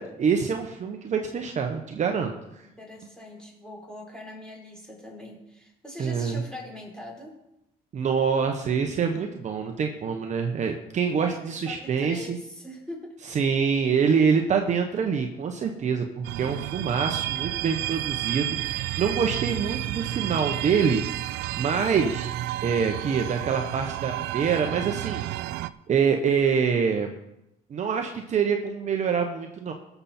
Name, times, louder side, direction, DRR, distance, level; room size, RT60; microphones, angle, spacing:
voice 1, 0.0-2.3 6.0-6.4 7.9-12.4 13.3-22.3 22.6-25.3 25.9-27.1 27.7-29.7, right 6 dB, 45° right, 4 dB, 1.1 m, -25 dB
voice 2, 2.6-7.4 11.2-11.3 11.6-13.1, left 1 dB, 5° left, -2 dB, 4.4 m, -42 dB
sound 1, 16.2-25.7, right 15 dB, 85° right, 0.5 m, -31 dB
18.0 x 7.0 x 4.4 m, 0.87 s
cardioid pair, 110°, 17 cm